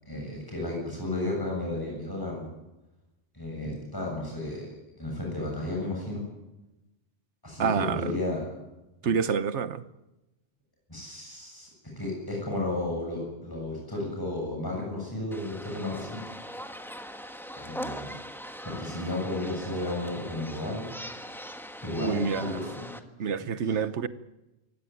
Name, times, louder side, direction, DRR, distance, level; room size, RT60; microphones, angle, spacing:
voice 1, 0.0-2.5 3.3-6.2 7.4-8.4 9.0-9.2 10.9-11.7 12.0-16.2 16.9-17.0 17.5-18.2 18.6-20.9 21.8-22.9 23.6-23.7, left 2 dB, 20° left, 7.3 m, -33 dB
voice 2, 7.6-8.2 9.0-9.8 22.0-22.6 23.2-24.1, right 6 dB, 85° right, 1.3 m, -28 dB
sound 1, 15.3-23.0, equal, ahead, 1.4 m, -41 dB
24.5 x 16.5 x 9.4 m
omnidirectional pair, 1.1 m